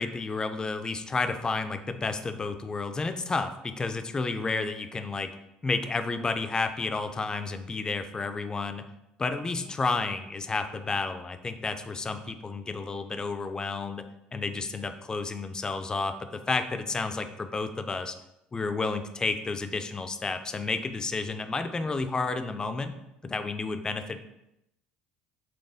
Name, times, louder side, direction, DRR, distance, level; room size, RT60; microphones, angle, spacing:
voice 1, 0.0-5.3 5.6-8.8 9.2-14.0 14.3-18.2 18.5-22.9 23.2-24.2, left 3 dB, 20° left, 8 dB, 0.4 m, -31 dB
4.2 x 2.9 x 3.4 m, 0.85 s
supercardioid pair, 90°, 3 cm